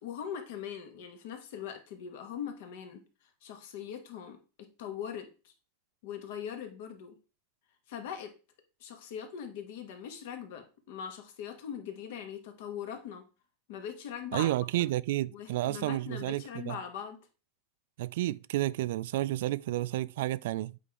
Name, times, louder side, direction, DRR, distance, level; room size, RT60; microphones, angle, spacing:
voice 1, 0.0-3.0 3.4-4.4 4.8-5.5 6.0-7.1 7.9-8.3 8.8-13.2 13.7-14.9 15.3-17.2, left 8 dB, 65° left, 1.6 m, -41 dB
voice 2, 14.3-16.8 18.0-20.8, right 15 dB, 65° right, 0.3 m, -31 dB
8.3 x 5.2 x 3.6 m
supercardioid pair, 165°, 0 cm